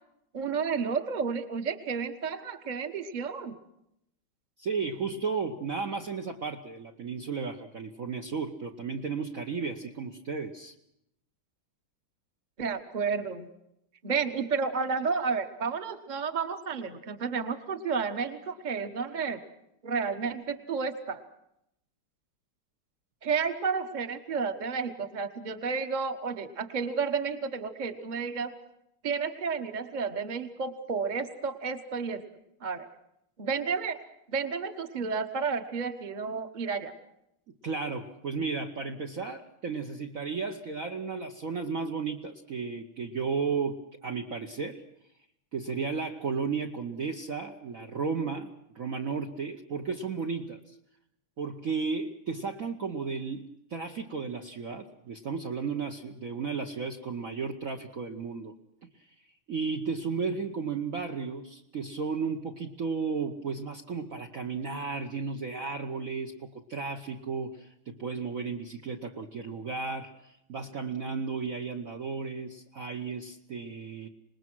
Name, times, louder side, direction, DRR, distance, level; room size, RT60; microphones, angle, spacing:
voice 1, 0.3-3.6 12.6-13.5 14.0-19.4 19.8-21.2 23.2-28.5 29.0-32.2 32.6-32.9 33.4-34.0 34.3-37.0, right 5 dB, 25° right, 9 dB, 1.1 m, -31 dB
voice 2, 4.6-10.7 37.5-44.8 45.5-50.8 51.4-58.5 58.8-59.1 59.5-74.1, right 5 dB, 50° right, 2 dB, 1.1 m, -34 dB
26.0 x 20.0 x 6.2 m, 0.80 s
omnidirectional pair, 2.3 m